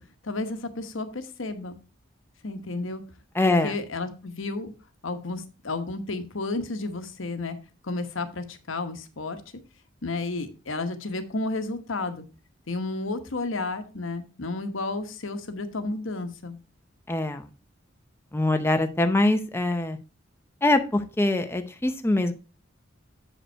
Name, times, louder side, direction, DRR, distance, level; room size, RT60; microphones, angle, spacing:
voice 1, 0.2-1.8 2.4-3.0 3.6-4.7 5.0-7.6 7.8-9.4 10.0-12.2 12.7-16.6, left 3 dB, 75° left, 8 dB, 1.1 m, -32 dB
voice 2, 3.4-3.7 17.1-17.5 18.3-20.0 20.6-22.3, left 2 dB, 10° left, 6 dB, 0.6 m, -23 dB
7.6 x 5.2 x 4.4 m, 0.32 s
head